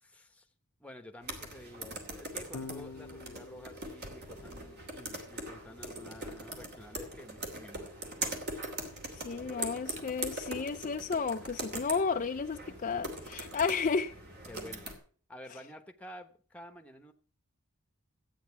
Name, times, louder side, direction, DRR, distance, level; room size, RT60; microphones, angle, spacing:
voice 1, 0.0-0.5 0.8-7.9 9.3-9.8 14.5-14.9 15.3-17.1, left 1 dB, 5° left, 1.1 m, -50 dB
sound 1, 1.2-15.0, right 2 dB, 50° right, 2.8 m, -42 dB
Electric guitar / Bass guitar, 2.5-8.9, left 4 dB, 80° left, 0.8 m, -51 dB
Fire, 8.5-15.3, right 4 dB, 35° right, 1.8 m, -57 dB
voice 2, 9.1-14.1, left 5 dB, 35° left, 0.5 m, -32 dB
13.0 x 9.1 x 5.9 m
head